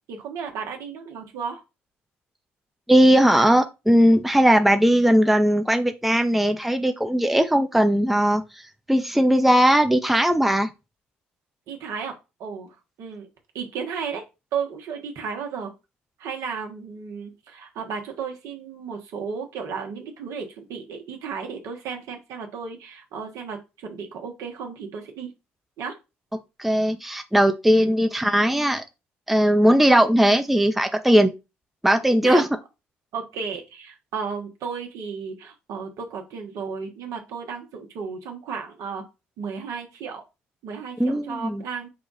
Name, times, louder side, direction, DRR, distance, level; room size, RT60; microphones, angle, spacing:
voice 1, 0.1-1.6 11.7-12.1 12.4-13.3 13.5-14.2 14.5-15.7 16.2-25.3 25.8-26.0 27.7-28.0 32.2-32.4 33.1-39.0 39.4-40.2 40.6-41.9, right 6 dB, 70° right, 1.1 m, -34 dB
voice 2, 2.9-8.4 8.9-10.7 26.6-28.8 29.3-31.3 31.8-32.4 41.0-41.6, equal, 5° right, 0.6 m, -18 dB
4.8 x 2.4 x 3.9 m
hypercardioid pair, 60°, 6 cm